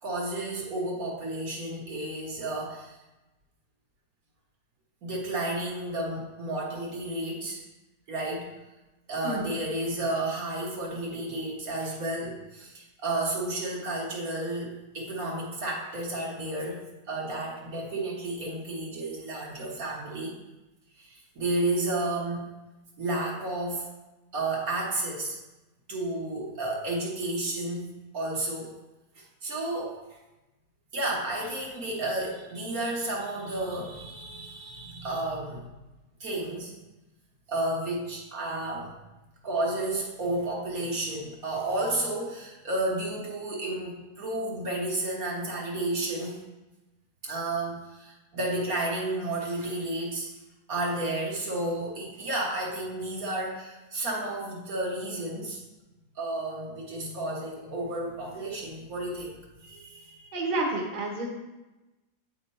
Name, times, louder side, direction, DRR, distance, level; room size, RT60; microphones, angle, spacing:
voice 1, 0.0-3.0 5.0-7.6 8.1-8.6 9.1-20.4 21.0-22.4 23.0-23.9 24.3-25.4 25.9-28.8 29.2-30.0 30.9-35.7 36.2-36.7 37.5-38.9 39.4-46.4 47.2-50.3 50.7-55.6 56.2-60.3, right 2 dB, 60° right, -3 dB, 1.8 m, -32 dB
voice 2, 60.3-61.3, right 2 dB, 30° right, -1 dB, 1.1 m, -29 dB
8.8 x 3.7 x 4.2 m, 1.0 s
omnidirectional pair, 1.7 m